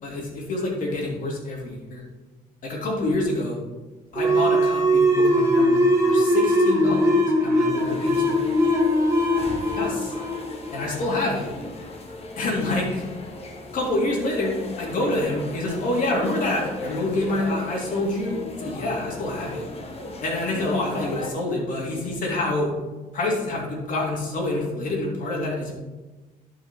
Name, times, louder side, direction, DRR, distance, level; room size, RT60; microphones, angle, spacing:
voice 1, 0.0-2.0 2.6-3.6 4.1-7.1 7.4-8.4 9.8-10.1 10.7-11.5 12.4-13.0 13.7-19.7 20.2-22.7 23.1-25.7, left 2 dB, 60° left, -2 dB, 2.9 m, -27 dB
sound 1, 4.2-11.4, equal, 20° right, 1.8 m, -21 dB
sound 2, 7.8-21.3, left 2 dB, 40° left, 1.3 m, -37 dB
11.5 x 5.1 x 3.7 m, 1.2 s
cardioid pair, 95°, 15 cm